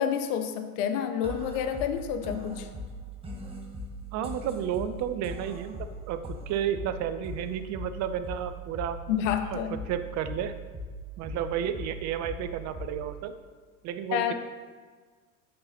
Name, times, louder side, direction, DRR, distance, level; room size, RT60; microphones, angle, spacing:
voice 1, 0.0-2.7 9.1-9.8 14.1-14.3, left 8 dB, 60° left, 8 dB, 0.8 m, -29 dB
sound 1, 1.2-13.2, equal, 15° right, 1.0 m, -40 dB
voice 2, 4.1-9.0 9.5-10.5 11.2-13.3 13.8-14.3, right 9 dB, 40° right, 11 dB, 0.6 m, -32 dB
8.6 x 5.6 x 2.8 m, 1.5 s
hypercardioid pair, 80°, 42 cm